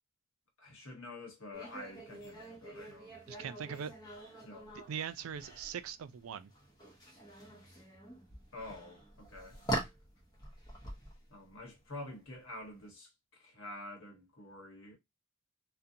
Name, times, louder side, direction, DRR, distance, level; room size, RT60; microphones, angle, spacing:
voice 1, 0.6-3.2 4.4-4.8 8.5-9.9 11.3-15.0, left 2 dB, 70° left, 1.1 m, -48 dB
sound 1, 1.5-12.8, right 1 dB, 20° left, 0.7 m, -44 dB
voice 2, 3.3-3.9 4.7-6.5, right 7 dB, 85° right, 0.3 m, -41 dB
2.5 x 2.1 x 2.6 m
head